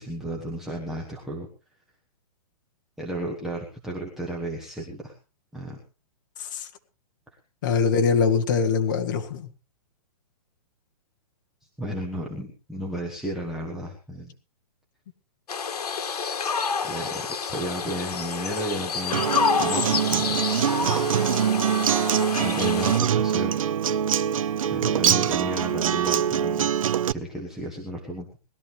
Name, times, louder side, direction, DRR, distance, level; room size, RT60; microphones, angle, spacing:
voice 1, 0.0-1.5 3.0-5.1 5.5-5.8 11.8-14.3 16.8-19.3 19.6-20.4 20.8-21.1 22.3-23.6 24.7-26.7 27.1-28.4, right 1 dB, ahead, 1.1 m, -33 dB
voice 2, 7.6-9.5, left 5 dB, 30° left, 1.5 m, -23 dB
sound 1, 15.5-23.0, left 6 dB, 70° left, 2.2 m, -28 dB
Acoustic guitar, 19.1-27.1, right 9 dB, 55° right, 0.7 m, -23 dB
20.0 x 13.0 x 3.4 m
hypercardioid pair, 180°, 20 cm